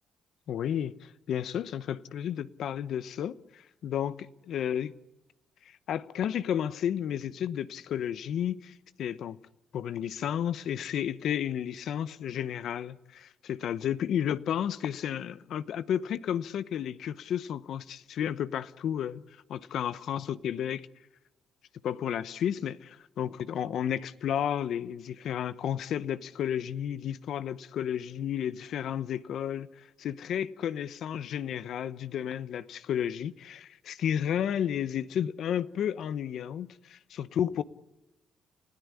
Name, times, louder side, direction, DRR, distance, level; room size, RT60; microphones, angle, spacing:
voice 1, 0.5-4.9 5.9-9.4 9.7-19.2 19.5-20.9 21.8-37.6, left 9 dB, 70° left, 1.0 m, -32 dB
29.5 x 16.0 x 9.8 m
cardioid pair, 90°, 0 cm